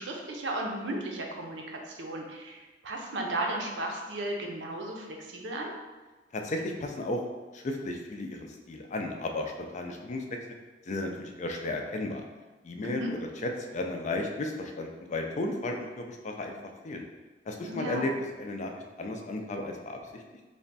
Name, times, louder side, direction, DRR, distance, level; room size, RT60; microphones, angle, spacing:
voice 1, 0.0-5.7 12.8-13.1 17.6-18.1, right 1 dB, 70° right, 1 dB, 0.6 m, -35 dB
voice 2, 6.3-7.2 7.5-10.2 10.9-12.2 12.6-13.0 13.4-16.5 16.8-17.0 17.5-18.1 18.4-18.7 19.0-20.2, left 2 dB, 40° left, 3 dB, 0.4 m, -34 dB
3.3 x 2.2 x 3.9 m, 1.2 s
head